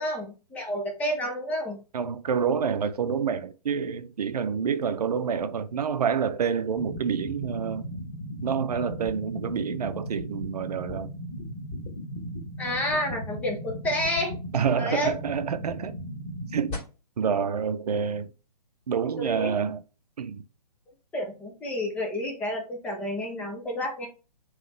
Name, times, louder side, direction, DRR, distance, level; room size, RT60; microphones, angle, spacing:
voice 1, 0.0-1.8 12.6-14.4 14.7-15.1 19.2-19.5 21.1-24.1, equal, 5° left, 0.6 m, -30 dB
voice 2, 1.9-7.9 8.4-11.1 14.5-15.9 16.5-16.8 17.2-18.3 18.9-19.8 20.2-20.4, right 7 dB, 65° right, 0.6 m, -28 dB
sound 1, 6.8-16.8, equal, 35° left, 2.2 m, -37 dB
3.8 x 3.1 x 3.1 m
hypercardioid pair, 145°, 21 cm